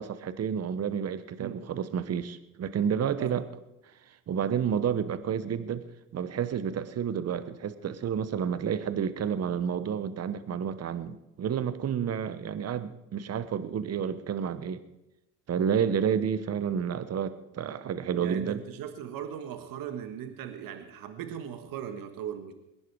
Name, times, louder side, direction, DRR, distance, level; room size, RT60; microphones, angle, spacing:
voice 1, 0.0-3.4 4.3-5.9 6.1-14.8 15.5-18.6, right 8 dB, 40° right, 13 dB, 1.1 m, -30 dB
voice 2, 18.2-22.5, right 9 dB, 55° right, 8 dB, 1.6 m, -38 dB
21.0 x 11.0 x 4.8 m, 0.91 s
hypercardioid pair, 70°, 39 cm